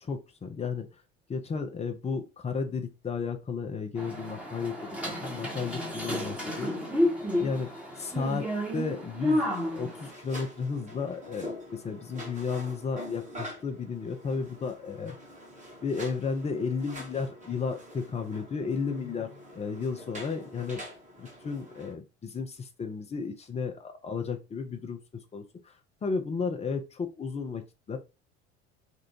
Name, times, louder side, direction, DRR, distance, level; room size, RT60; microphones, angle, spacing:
voice 1, 0.1-0.9 1.3-6.7 7.4-7.7 8.0-9.5 9.7-15.2 15.8-20.8 21.2-25.0 25.3-25.4 26.0-27.6 27.9-28.0, left 5 dB, 20° left, 5 dB, 0.7 m, -33 dB
sound 1, 4.0-10.1, left 1 dB, 5° right, 1.3 m, -31 dB
sound 2, 9.3-21.9, equal, 20° right, 1.5 m, -45 dB
3.5 x 2.5 x 4.4 m, 0.28 s
figure-of-eight pair, 65°, 34 cm